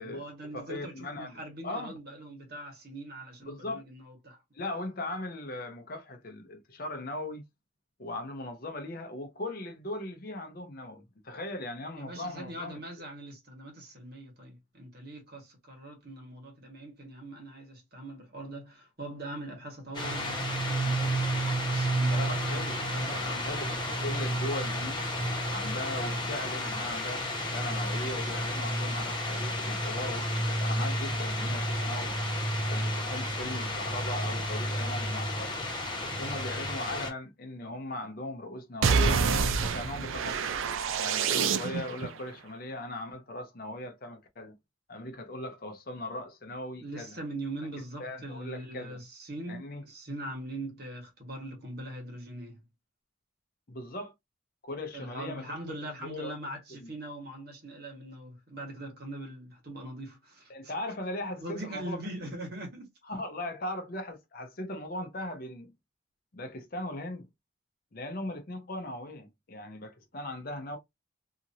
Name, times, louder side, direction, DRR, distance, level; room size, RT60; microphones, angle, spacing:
voice 1, 0.0-4.4 11.9-23.7 46.8-52.6 54.9-60.7 61.4-62.9, right 1 dB, 50° right, 1.3 m, -42 dB
voice 2, 0.5-1.4 1.6-1.9 3.4-3.8 4.5-7.4 8.0-12.8 22.1-22.8 23.1-25.0 25.5-32.1 32.7-35.6 36.0-39.2 39.6-40.4 41.0-44.5 44.9-47.2 48.0-49.0 49.5-49.8 53.7-54.1 54.6-56.3 56.8-56.9 60.5-62.3 63.1-65.7 66.3-67.3 67.9-70.8, left 1 dB, 45° left, 0.6 m, -39 dB
sound 1, 19.9-37.1, equal, 20° left, 1.1 m, -31 dB
sound 2, 38.8-42.1, right 5 dB, 80° right, 0.4 m, -27 dB
2.8 x 2.6 x 2.6 m
head